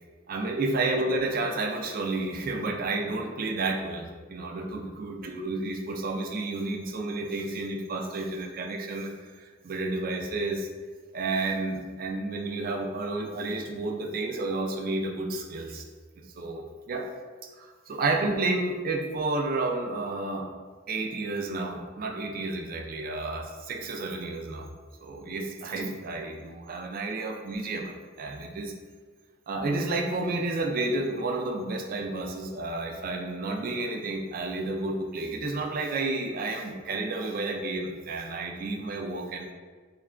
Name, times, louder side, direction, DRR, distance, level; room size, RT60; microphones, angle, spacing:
voice 1, 0.3-10.7 11.1-15.8 16.4-17.1 17.6-20.5 20.9-24.7 25.0-28.7 29.5-39.5, right 2 dB, 50° right, 2 dB, 0.4 m, -31 dB
3.2 x 2.3 x 3.6 m, 1.5 s
head